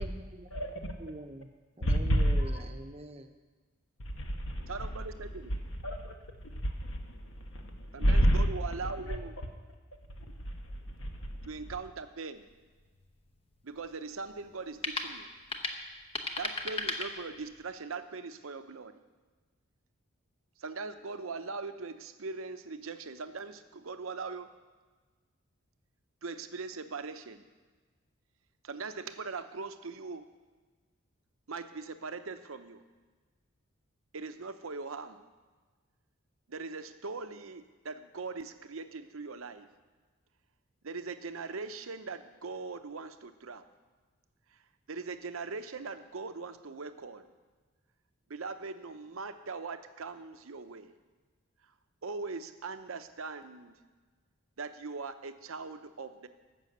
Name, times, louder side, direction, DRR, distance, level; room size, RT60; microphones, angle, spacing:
voice 1, 0.0-0.5 1.0-1.5 1.8-3.3, right 1 dB, 30° right, 0.7 m, -43 dB
voice 2, 1.8-2.6 4.0-9.2 10.1-11.8, equal, 65° left, 1.2 m, -31 dB
voice 3, 4.7-5.5 7.9-9.3 11.5-12.5 13.6-15.3 16.4-19.0 20.6-24.5 26.2-27.5 28.6-30.2 31.5-32.8 34.1-35.3 36.5-39.7 40.8-43.6 44.9-47.3 48.3-50.9 52.0-53.8 54.6-56.3, right 4 dB, 75° right, 0.7 m, -41 dB
sound 1, 12.3-17.7, left 3 dB, 25° left, 0.9 m, -39 dB
13.5 x 6.2 x 8.0 m
head